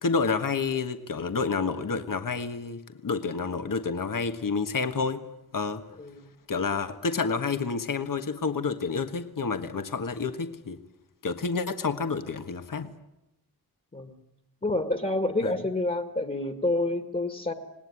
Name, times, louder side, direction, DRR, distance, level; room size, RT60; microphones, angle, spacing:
voice 1, 0.0-5.2 5.5-5.8 6.5-10.8 11.2-12.9 15.4-15.5, left 4 dB, 60° left, 8 dB, 1.6 m, -29 dB
voice 2, 14.6-17.5, left 2 dB, 25° left, 7 dB, 1.9 m, -28 dB
27.0 x 19.5 x 9.8 m, 0.92 s
wide cardioid pair, 105°, 36 cm